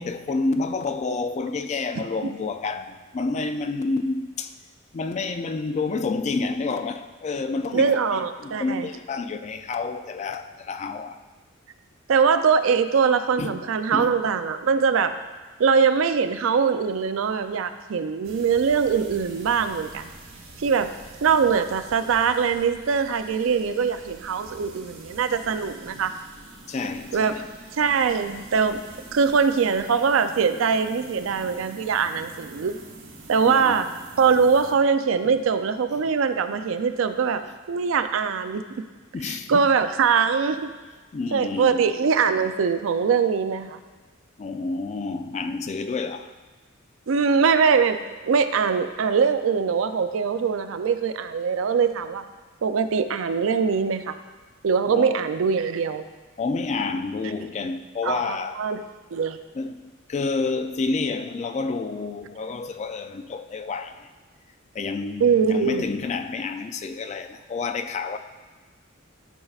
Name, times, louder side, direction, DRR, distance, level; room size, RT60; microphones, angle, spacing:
voice 1, 0.0-4.5 4.9-11.2 13.4-14.1 26.7-27.4 33.5-33.8 39.1-39.7 41.1-41.8 44.4-46.3 54.9-55.2 56.4-58.7 59.5-64.1 64.7-68.2, left 3 dB, 35° left, 0.3 m, -29 dB
voice 2, 7.7-8.9 12.1-15.1 15.6-20.1 20.6-20.9 21.2-26.1 27.1-27.5 27.7-28.8 29.1-32.8 33.3-33.9 34.2-38.6 39.2-40.7 41.3-43.8 47.1-48.0 48.2-52.2 52.6-54.2 54.6-56.0 58.0-58.8 59.1-59.4 65.2-65.8, right 6 dB, 75° right, 0.4 m, -22 dB
sound 1, 18.2-34.7, right 2 dB, 90° right, 1.3 m, -45 dB
12.0 x 5.4 x 2.4 m
head